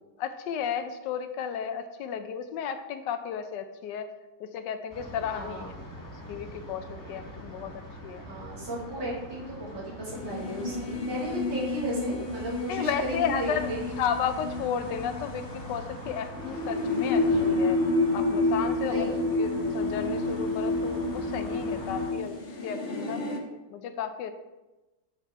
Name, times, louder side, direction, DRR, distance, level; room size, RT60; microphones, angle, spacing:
voice 1, 0.2-4.1 4.4-5.6 6.3-8.3 12.7-13.7 14.0-17.8 18.1-19.1 19.4-23.2 23.7-24.3, left 8 dB, 75° left, 9 dB, 1.2 m, -33 dB
sound 1, 4.9-22.1, equal, 15° left, 1.0 m, -43 dB
voice 2, 5.3-5.8 8.3-13.9 18.9-19.2, right 1 dB, 75° right, -8 dB, 3.4 m, -35 dB
sound 2, 10.1-23.4, left 2 dB, 50° left, 0.7 m, -30 dB
8.2 x 4.1 x 4.5 m, 1.1 s
omnidirectional pair, 2.0 m